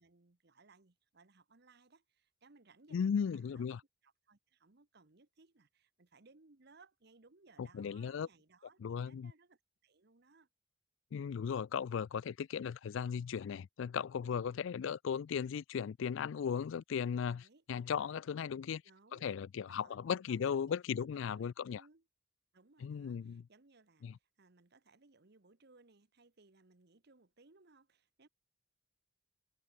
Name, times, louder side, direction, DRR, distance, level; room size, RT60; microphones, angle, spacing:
voice 1, 0.0-3.6 4.0-10.5 14.2-14.5 17.4-17.6 18.8-19.3 19.7-22.1 22.5-28.3, right 3 dB, 50° right, 1.2 m, -65 dB
voice 2, 2.9-3.8 7.6-8.3 8.8-9.3 11.1-18.8 19.1-21.8 22.8-23.5 24.0-24.1, left 7 dB, 60° left, 0.3 m, -37 dB
head